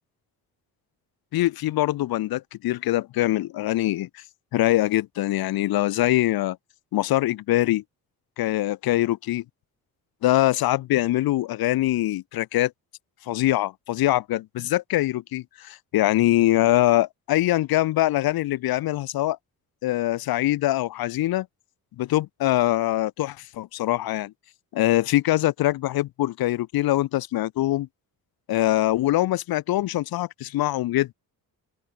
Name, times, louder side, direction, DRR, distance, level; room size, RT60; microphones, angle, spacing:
voice 1, 1.3-4.2 4.5-6.6 6.9-7.8 8.4-9.4 10.2-12.7 13.3-19.4 19.8-21.5 22.0-24.3 24.7-27.9 28.5-31.1, left 15 dB, 75° left, 0.7 m, -23 dB
open air
cardioid pair, 140°, 36 cm